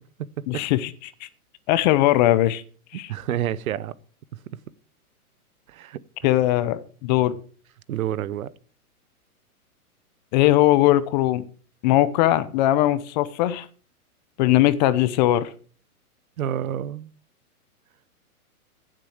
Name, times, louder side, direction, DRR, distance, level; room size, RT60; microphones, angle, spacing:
voice 1, 0.5-1.3 1.7-2.6 2.9-3.1 6.2-7.4 10.3-11.4 11.8-13.7 14.4-15.5, left 15 dB, 30° left, 0.7 m, -20 dB
voice 2, 2.9-3.9 5.7-6.0 7.9-8.5 16.4-17.1, right 11 dB, 65° right, 0.9 m, -28 dB
15.0 x 7.6 x 4.9 m
hypercardioid pair, 135°, 45 cm